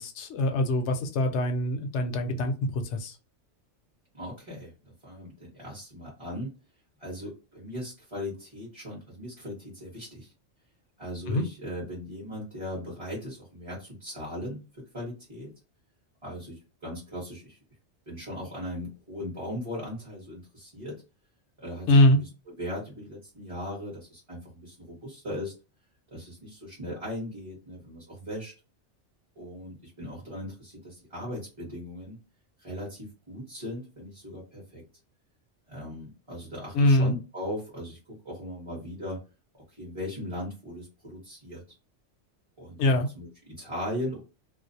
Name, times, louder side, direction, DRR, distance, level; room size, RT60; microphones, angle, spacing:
voice 1, 0.0-3.2 11.3-11.4 21.9-22.2 36.7-37.1 42.8-43.1, left 1 dB, 70° left, 6 dB, 0.8 m, -23 dB
voice 2, 4.1-6.5 7.0-10.3 11.0-15.5 16.2-17.6 18.1-21.0 21.6-22.3 22.6-25.5 26.1-28.5 29.4-32.2 32.6-34.8 35.7-39.2 39.5-41.6 42.6-44.2, left 1 dB, 25° right, -5 dB, 0.9 m, -38 dB
2.4 x 2.0 x 2.6 m, 0.31 s
omnidirectional pair, 1.2 m